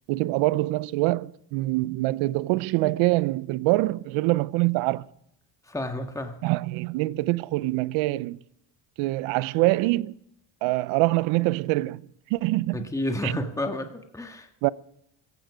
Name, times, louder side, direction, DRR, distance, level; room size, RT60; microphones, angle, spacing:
voice 1, 0.1-5.1 6.4-8.4 9.0-10.1 10.6-12.0 12.3-12.9 13.2-13.3 14.6-14.7, right 20 dB, 85° right, 0.7 m, -24 dB
voice 2, 5.7-6.4 12.7-14.5, left 1 dB, 5° left, 1.8 m, -30 dB
17.0 x 15.0 x 5.0 m
cardioid pair, 100°, 46 cm